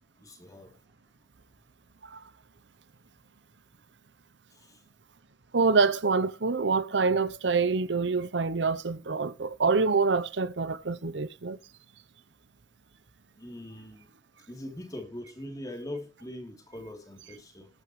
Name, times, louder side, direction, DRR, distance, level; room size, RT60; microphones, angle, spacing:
voice 1, 0.2-0.7 4.6-4.8 13.4-14.0 14.5-17.7, left 1 dB, 20° left, 3.5 m, -41 dB
voice 2, 5.5-11.6, right 4 dB, 80° right, 0.9 m, -26 dB
19.5 x 8.4 x 3.3 m
head